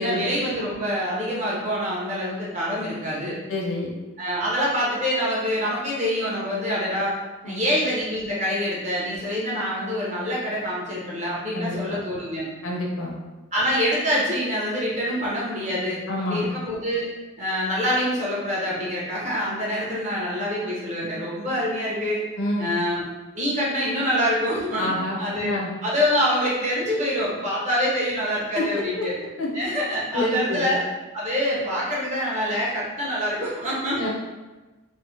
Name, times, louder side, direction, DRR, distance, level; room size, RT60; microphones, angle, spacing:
voice 1, 0.0-3.4 4.2-7.1 7.4-12.5 13.5-16.0 16.3-17.1 17.4-22.2 22.6-23.0 23.3-25.5 25.8-29.1 29.5-30.8 31.1-34.1, equal, 35° right, -6 dB, 0.8 m, -25 dB
voice 2, 3.5-3.9 7.4-7.7 11.5-12.0 12.6-13.2 16.1-16.5 22.4-22.7 24.8-25.7 28.5-28.6 29.0-29.1 29.4-29.5 30.1-30.7 33.9-34.1, left 1 dB, 80° left, -1 dB, 0.6 m, -27 dB
3.2 x 2.0 x 2.8 m, 1.2 s
head